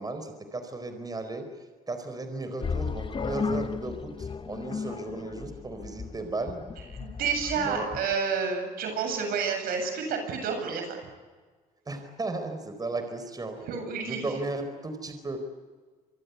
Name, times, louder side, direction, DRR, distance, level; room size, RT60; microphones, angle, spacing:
voice 1, 0.0-1.5 1.9-6.6 7.5-7.9 11.9-13.6 14.0-15.4, right 2 dB, 25° right, 7 dB, 4.4 m, -35 dB
sound 1, 2.6-8.1, left 5 dB, 35° left, 1.1 m, -35 dB
voice 2, 7.0-11.0 13.6-14.3, right 5 dB, 80° right, 5 dB, 7.9 m, -30 dB
26.0 x 23.5 x 8.3 m, 1.4 s
cardioid pair, 80°, 15 cm